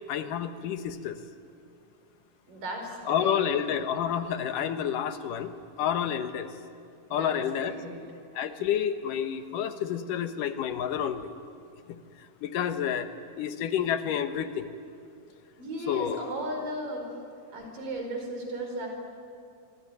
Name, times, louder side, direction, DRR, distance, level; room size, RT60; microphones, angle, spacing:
voice 1, 0.1-1.2 3.1-5.5 5.8-6.5 7.1-7.7 8.4-11.3 11.9-12.0 12.4-13.1 13.4-14.7 15.9-16.2, left 9 dB, 80° left, 9 dB, 2.8 m, -29 dB
voice 2, 2.5-3.7 7.1-8.0 15.6-17.1 17.5-18.9, right 1 dB, 80° right, 3 dB, 6.3 m, -36 dB
25.5 x 25.5 x 9.2 m, 2.4 s
omnidirectional pair, 3.8 m